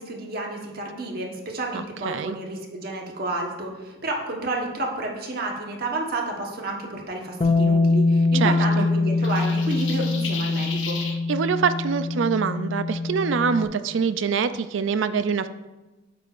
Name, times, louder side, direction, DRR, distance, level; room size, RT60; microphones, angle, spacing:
voice 1, 0.0-11.0, right 2 dB, 55° right, 0 dB, 1.2 m, -30 dB
voice 2, 1.7-2.4 8.3-8.9 11.3-15.5, right 6 dB, 75° right, 12 dB, 0.4 m, -25 dB
Bass guitar, 7.4-13.7, left 3 dB, 30° left, 0.4 m, -23 dB
sound 1, 9.2-11.2, left 5 dB, 75° left, 0.9 m, -34 dB
9.1 x 6.9 x 2.5 m, 1.1 s
head